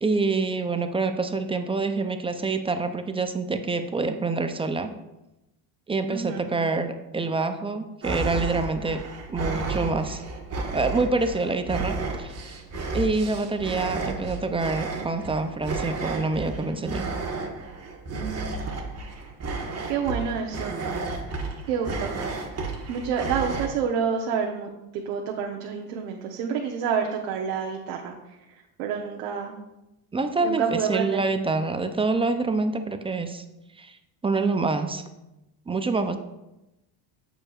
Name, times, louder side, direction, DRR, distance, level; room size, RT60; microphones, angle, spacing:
voice 1, 0.0-4.9 5.9-9.0 9.3-10.2 10.7-12.6 12.9-17.1 30.1-33.4 33.8-34.0 34.2-35.0 35.7-36.2, right 3 dB, 15° right, 8 dB, 0.4 m, -26 dB
voice 2, 6.1-6.5 18.1-18.8 19.9-20.8 21.7-22.1 22.9-29.6 30.4-31.2, right 7 dB, 80° right, 1 dB, 1.0 m, -29 dB
sound 1, 8.0-23.7, right 3 dB, 30° right, 1.4 m, -32 dB
8.5 x 6.9 x 2.4 m, 0.95 s
supercardioid pair, 95°, 48 cm